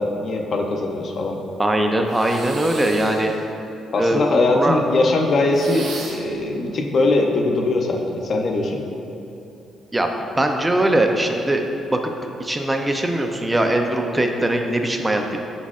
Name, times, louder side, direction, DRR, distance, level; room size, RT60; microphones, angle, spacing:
voice 1, 0.0-1.4 3.9-8.8, left 2 dB, 55° left, 2 dB, 0.4 m, -21 dB
voice 2, 1.6-3.3 3.9-4.8 9.9-11.6 11.9-12.0 12.4-15.4, right 1 dB, 15° right, 3 dB, 0.3 m, -21 dB
sound 1, 2.1-3.4 5.5-6.4, right 3 dB, 70° right, 0.6 m, -36 dB
5.1 x 4.1 x 2.4 m, 2.8 s
cardioid pair, 90°, 0 cm